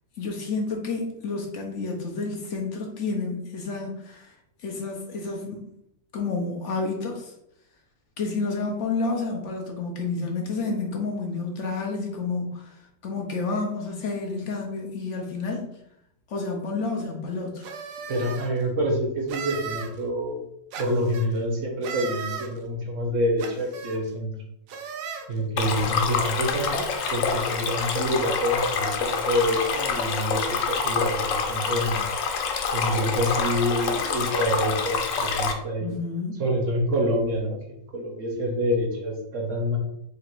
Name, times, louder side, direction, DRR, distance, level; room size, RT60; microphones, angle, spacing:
voice 1, 0.2-5.6 6.1-7.3 8.2-15.7 16.3-17.7 35.8-36.4, left 3 dB, 65° left, 1 dB, 0.7 m, -30 dB
sound 1, 17.6-18.5 19.3-19.9 20.7-21.3 21.8-22.5 23.4-24.0 24.7-25.3 26.1-26.2 26.5-27.1, right 7 dB, 85° right, 1.3 m, -36 dB
voice 2, 18.1-20.4 20.8-24.3 25.3-32.0 32.7-35.9 36.4-37.6 37.9-39.8, equal, 60° right, 0 dB, 0.8 m, -27 dB
Stream, 25.6-35.5, left 5 dB, 90° left, 1.3 m, -27 dB
3.9 x 2.5 x 4.3 m, 0.77 s
omnidirectional pair, 1.9 m